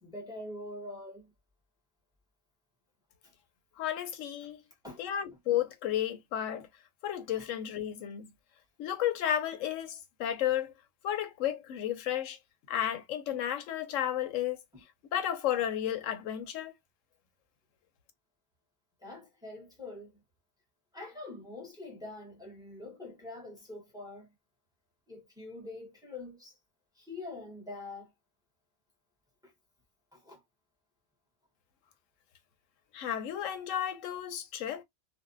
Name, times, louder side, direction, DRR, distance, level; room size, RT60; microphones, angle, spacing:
voice 1, 0.0-1.3 3.2-3.3 4.8-5.0 14.7-14.8 19.0-20.2 20.9-24.3 25.1-26.6 27.0-28.1 29.4-29.5 30.1-30.4, left 2 dB, 5° right, 0.7 m, -44 dB
voice 2, 3.8-4.6 5.0-6.7 7.0-8.3 8.8-10.7 11.0-12.4 12.7-14.6 15.1-16.7 32.9-34.8, left 11 dB, 85° left, 1.0 m, -32 dB
2.6 x 2.1 x 2.4 m
omnidirectional pair, 1.3 m